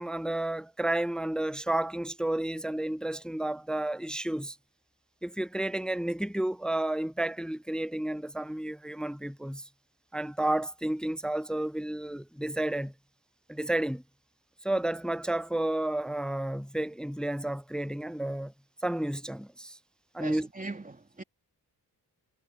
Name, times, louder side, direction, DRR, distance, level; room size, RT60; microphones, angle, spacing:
voice 1, 0.0-4.6 5.2-9.6 10.1-12.9 13.5-14.0 14.6-18.5 18.8-19.8 20.1-20.5, right 1 dB, ahead, 0.3 m, -31 dB
voice 2, 20.2-21.2, right 3 dB, 20° right, 3.1 m, -40 dB
cardioid pair, 70°, 38 cm